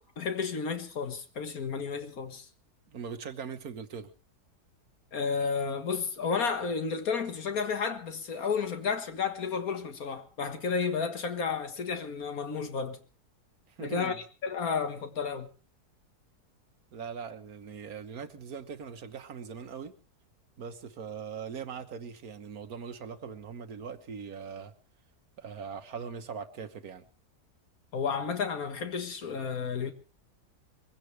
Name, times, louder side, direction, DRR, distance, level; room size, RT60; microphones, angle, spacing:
voice 1, 0.2-2.5 5.1-13.0 13.8-14.2 14.4-15.5 27.9-29.9, left 5 dB, 60° left, 2.1 m, -32 dB
voice 2, 2.9-4.1 13.7-14.2 16.9-19.9 20.6-24.7 25.4-27.0, right 6 dB, 65° right, 1.7 m, -41 dB
22.5 x 16.5 x 3.3 m
omnidirectional pair, 1.7 m